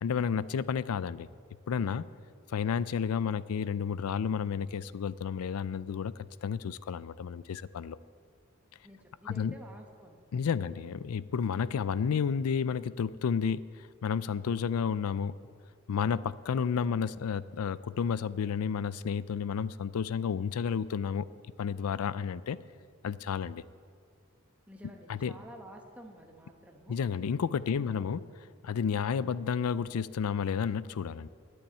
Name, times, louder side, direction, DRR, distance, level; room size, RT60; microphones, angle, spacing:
voice 1, 0.0-1.3 1.7-2.0 2.5-6.1 6.4-8.0 9.2-9.6 10.3-13.7 14.0-15.4 15.9-21.3 21.6-22.6 23.0-23.6 25.1-25.3 26.9-28.2 28.6-31.3, left 6 dB, 85° left, 18 dB, 0.4 m, -31 dB
voice 2, 8.8-10.2 10.6-10.8 24.7-27.0 27.9-28.0, right 1 dB, 5° right, 1 dB, 1.1 m, -50 dB
10.0 x 8.6 x 8.9 m, 2.1 s
head